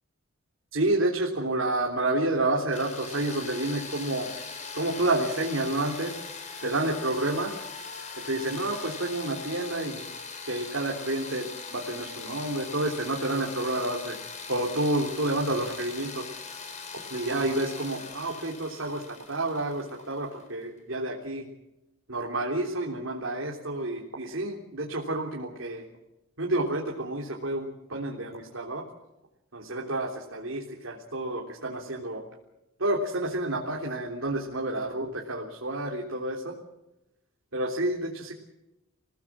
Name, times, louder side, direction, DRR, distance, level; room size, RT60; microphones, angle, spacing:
voice 1, 0.7-4.3 4.7-6.2 6.6-7.5 8.2-10.1 10.5-14.2 14.5-16.3 17.1-21.5 22.1-25.8 26.4-28.8 29.5-32.2 32.8-36.5 37.5-38.3, right 2 dB, 70° right, -1 dB, 3.5 m, -29 dB
sound 1, 2.7-20.4, left 4 dB, 35° left, 4.6 m, -41 dB
28.0 x 18.0 x 7.5 m, 0.92 s
head